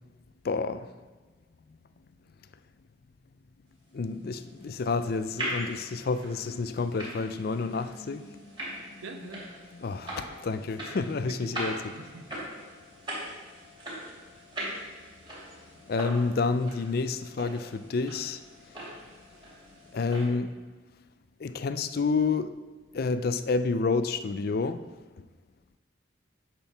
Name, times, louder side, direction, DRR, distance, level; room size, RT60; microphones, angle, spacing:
voice 1, 0.4-0.9 3.9-9.0 9.7-11.8 15.9-18.4 19.9-20.5 21.4-22.5 22.9-24.8, left 4 dB, 50° left, 0.4 m, -29 dB
sound 1, 4.2-20.3, right 1 dB, 25° right, 2.7 m, -41 dB
voice 2, 9.0-9.4 10.3-10.7 11.0-12.2, right 3 dB, 85° right, 0.9 m, -45 dB
8.6 x 4.5 x 5.9 m
head